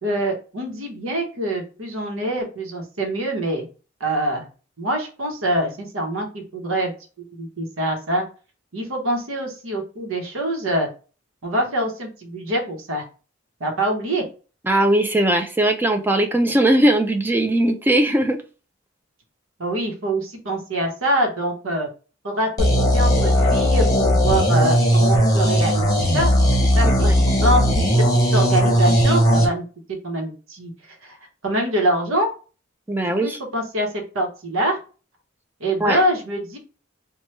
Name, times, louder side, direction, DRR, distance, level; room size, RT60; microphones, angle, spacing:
voice 1, 0.0-3.7 4.0-4.5 4.8-6.9 7.3-8.2 8.7-10.9 11.4-13.0 13.6-14.3 19.6-21.9 22.2-28.1 28.3-29.6 30.0-30.7 31.0-31.2 31.4-32.3 33.0-34.8 35.6-36.6, right 1 dB, 85° right, 2 dB, 0.9 m, -25 dB
voice 2, 14.7-18.4 27.0-27.2 32.9-33.4 35.8-36.0, right 1 dB, 10° right, 5 dB, 0.3 m, -19 dB
sound 1, 22.6-29.5, equal, 15° left, 0.8 m, -17 dB
3.0 x 2.2 x 3.2 m, 0.35 s
head